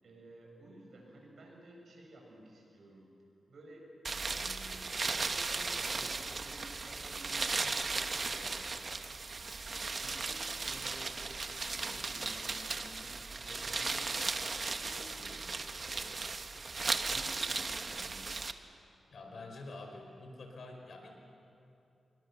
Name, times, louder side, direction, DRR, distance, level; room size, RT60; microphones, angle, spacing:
voice 1, 0.0-3.1 3.5-8.7 10.0-16.2 17.1-18.3, right 1 dB, 70° right, -1 dB, 7.0 m, -54 dB
sound 1, 4.0-18.5, right 4 dB, 45° right, 1.1 m, -36 dB
voice 2, 19.1-21.1, left 2 dB, 70° left, 2 dB, 4.7 m, -47 dB
26.0 x 21.0 x 6.8 m, 2.7 s
cardioid pair, 80°, 0 cm